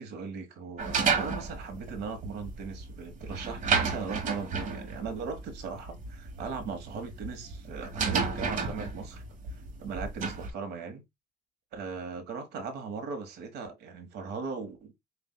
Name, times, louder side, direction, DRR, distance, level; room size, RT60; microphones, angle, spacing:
voice 1, 0.0-9.2 9.5-11.0 11.7-15.0, right 5 dB, 75° right, 1.3 m, -38 dB
sound 1, 0.8-10.5, right 5 dB, 50° right, 1.3 m, -32 dB
6.7 x 2.6 x 2.2 m
cardioid pair, 110°, 17 cm